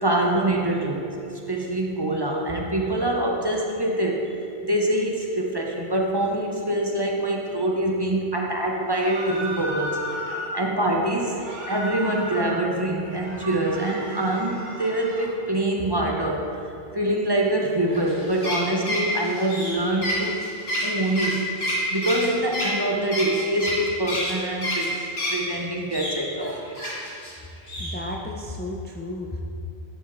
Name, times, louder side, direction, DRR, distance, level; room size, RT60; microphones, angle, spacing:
voice 1, 0.0-1.1 1.5-4.3 4.6-10.0 10.5-16.6 16.9-20.4 20.8-21.4 21.9-25.0 25.3-26.8, right 1 dB, 30° right, -1 dB, 0.6 m, -25 dB
sound 1, 8.9-10.6 11.3-12.6 13.0-15.3, equal, 80° right, 2.3 m, -34 dB
sound 2, 17.9-25.5 25.9-27.3 27.7-28.0, equal, 75° left, 2.1 m, -28 dB
voice 2, 27.6-29.4, left 1 dB, 15° left, -1 dB, 0.3 m, -33 dB
11.0 x 7.0 x 2.6 m, 2.6 s
omnidirectional pair, 1.1 m